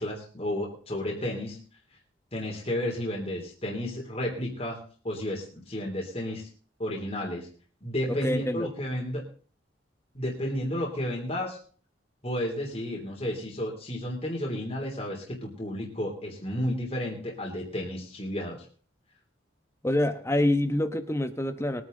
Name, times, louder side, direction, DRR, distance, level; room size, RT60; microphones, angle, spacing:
voice 1, 0.0-1.6 2.3-6.5 6.8-7.5 7.8-9.2 10.1-11.6 12.2-18.6, left 1 dB, 30° left, -2 dB, 3.2 m, -32 dB
voice 2, 8.1-8.7 19.8-21.8, left 1 dB, 15° left, 9 dB, 1.1 m, -26 dB
22.5 x 9.4 x 3.9 m, 0.42 s
head